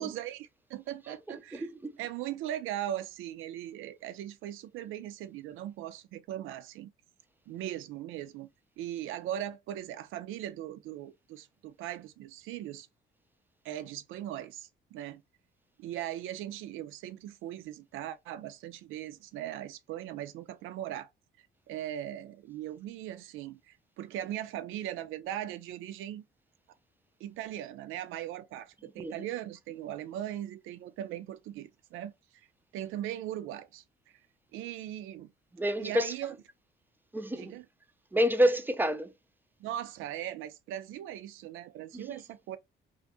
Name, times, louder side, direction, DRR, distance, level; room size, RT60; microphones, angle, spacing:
voice 1, 0.0-1.7 2.0-6.9 7.5-8.5 8.8-12.9 13.6-15.2 15.8-21.1 21.7-26.2 27.2-32.5 32.7-33.8 34.5-35.3 35.8-36.3 37.3-37.7 39.6-42.6, right 12 dB, 85° right, 0.4 m, -39 dB
voice 2, 1.3-2.0 29.0-29.1 35.5-36.1 37.1-37.6 38.1-39.1 41.9-42.1, equal, 10° right, 0.4 m, -28 dB
2.5 x 2.3 x 2.5 m
cardioid pair, 90°, 20 cm